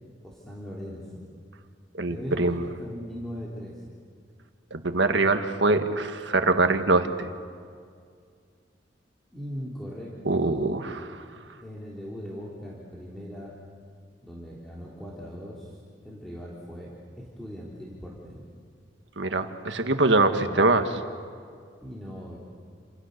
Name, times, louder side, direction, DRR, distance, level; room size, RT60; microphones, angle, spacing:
voice 1, 0.2-1.2 2.1-3.9 9.3-10.1 10.4-10.6 11.6-13.5 14.2-15.8 16.0-16.9 17.2-18.5 20.3-20.6 21.8-22.4, equal, ahead, -5 dB, 3.5 m, -39 dB
voice 2, 2.0-2.7 4.7-7.3 10.2-11.2 19.2-20.8, right 2 dB, 70° right, 7 dB, 1.8 m, -23 dB
29.5 x 27.5 x 6.8 m, 2.2 s
head